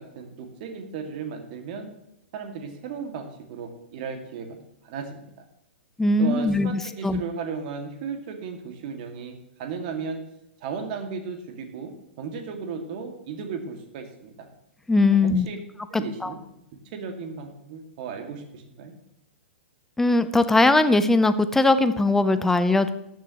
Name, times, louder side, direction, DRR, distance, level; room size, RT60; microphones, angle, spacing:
voice 1, 0.0-1.9 2.3-4.6 4.8-5.4 6.2-10.2 10.6-11.9 12.2-14.5 15.1-15.6 15.9-16.4 16.9-19.0, right 5 dB, 45° right, 5 dB, 2.2 m, -35 dB
voice 2, 6.0-6.7 7.0-7.2 14.9-15.5 15.9-16.3 20.0-22.9, left 2 dB, 5° left, 12 dB, 0.7 m, -20 dB
14.0 x 10.5 x 3.1 m, 0.85 s
figure-of-eight pair, 110°, 6 cm